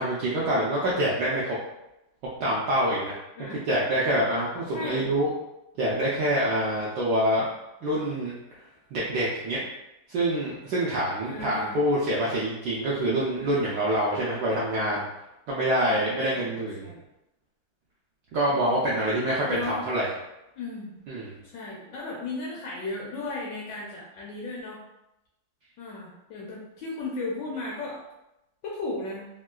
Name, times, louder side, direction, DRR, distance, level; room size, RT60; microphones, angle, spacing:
voice 1, 0.0-1.6 2.4-3.1 3.7-5.3 5.8-7.4 7.8-8.3 8.9-9.6 10.1-15.0 15.5-16.9 18.3-20.1 21.1-21.3, right 1 dB, 75° right, -6 dB, 1.0 m, -26 dB
voice 2, 3.4-3.7 4.7-5.1 11.2-11.8 15.9-16.5 16.8-17.0 19.5-19.9 20.6-21.0 21.4-24.8 25.8-28.0 28.6-29.3, left 3 dB, 75° left, -4 dB, 1.0 m, -35 dB
3.6 x 2.3 x 2.3 m, 0.90 s
omnidirectional pair, 2.4 m